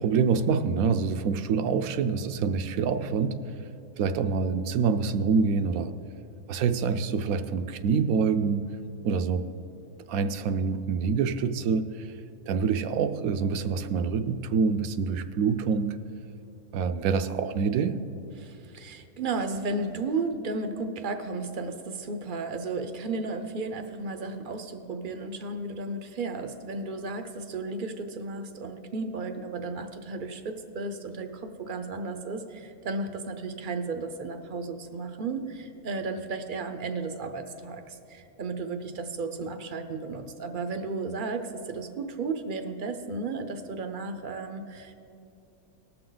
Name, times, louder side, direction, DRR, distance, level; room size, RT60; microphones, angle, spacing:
voice 1, 0.0-3.5 4.0-5.9 6.5-8.7 9.0-9.5 10.1-12.1 12.5-16.0 16.7-18.0, right 5 dB, 75° right, 10 dB, 1.0 m, -26 dB
voice 2, 18.4-44.9, right 3 dB, 50° right, 7 dB, 0.6 m, -34 dB
19.0 x 6.8 x 3.9 m, 2.6 s
omnidirectional pair, 1.6 m